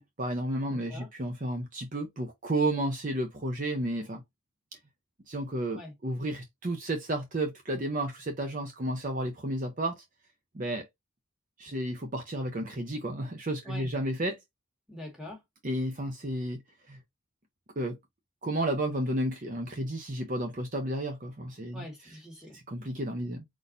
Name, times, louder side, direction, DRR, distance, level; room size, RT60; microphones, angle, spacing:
voice 1, 0.0-4.2 5.3-10.0 10.5-10.9 11.6-14.4 15.6-16.6 16.9-17.0 17.8-18.0 18.4-21.8 22.7-23.4, right 1 dB, 35° right, 0.7 m, -32 dB
voice 2, 0.7-1.1 5.7-5.9 13.6-13.9 14.9-15.4 21.7-22.6, left 1 dB, 5° right, 1.8 m, -44 dB
4.6 x 4.2 x 2.6 m
head